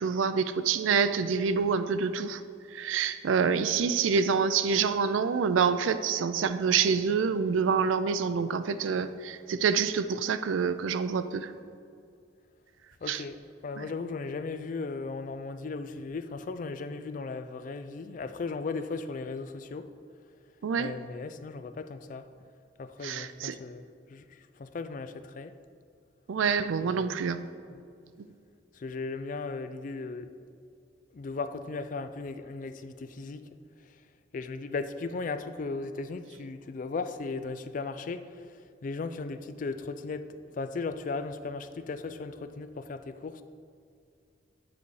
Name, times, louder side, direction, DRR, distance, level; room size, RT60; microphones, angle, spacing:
voice 1, 0.0-2.4 2.7-11.5 13.1-13.2 13.8-13.9 20.6-20.9 23.0-23.5 26.3-27.4, right 6 dB, 90° right, 12 dB, 0.4 m, -27 dB
voice 2, 13.0-19.9 20.8-22.2 22.8-25.5 26.8-27.1 27.7-27.8 28.7-30.3 31.1-33.5 34.3-43.4, left 4 dB, 45° left, 11 dB, 0.3 m, -37 dB
9.3 x 4.2 x 4.7 m, 2.3 s
head